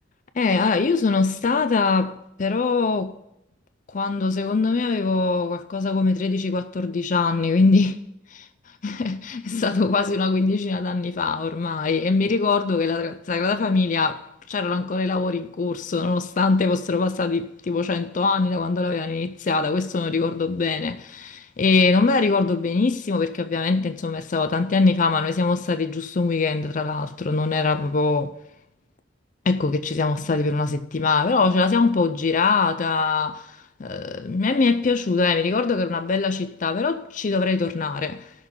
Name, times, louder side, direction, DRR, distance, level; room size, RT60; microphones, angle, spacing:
voice 1, 0.4-3.2 3.9-8.0 8.3-8.4 8.8-28.3 29.5-33.4 33.8-38.2, left 4 dB, 40° left, 0.4 m, -22 dB
19.0 x 6.4 x 3.7 m
head